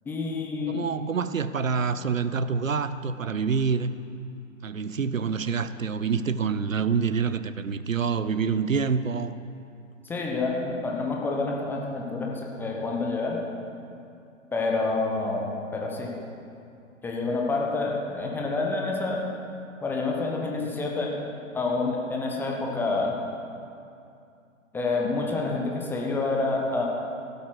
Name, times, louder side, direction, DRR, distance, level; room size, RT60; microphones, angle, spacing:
voice 1, 0.1-0.8 10.0-13.4 14.5-15.5 15.7-16.1 17.0-19.2 19.8-21.1 21.5-23.1 24.7-26.8, left 3 dB, 5° left, -1 dB, 0.8 m, -28 dB
voice 2, 0.7-3.9 4.6-9.4, right 5 dB, 75° right, 13 dB, 0.7 m, -27 dB
16.0 x 8.3 x 6.1 m, 2.5 s
figure-of-eight pair, 125°, 40 cm